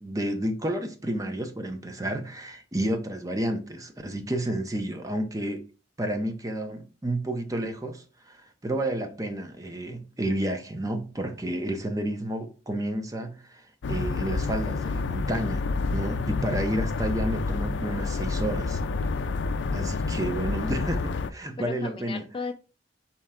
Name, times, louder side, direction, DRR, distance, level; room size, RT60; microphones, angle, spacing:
voice 1, 0.0-5.6 6.0-18.8 19.7-22.2, right 1 dB, 20° right, 0.6 m, -31 dB
sound 1, 13.8-21.3, left 3 dB, 90° left, 0.4 m, -28 dB
voice 2, 21.6-22.5, left 4 dB, 30° left, 0.4 m, -36 dB
4.4 x 3.2 x 3.6 m
head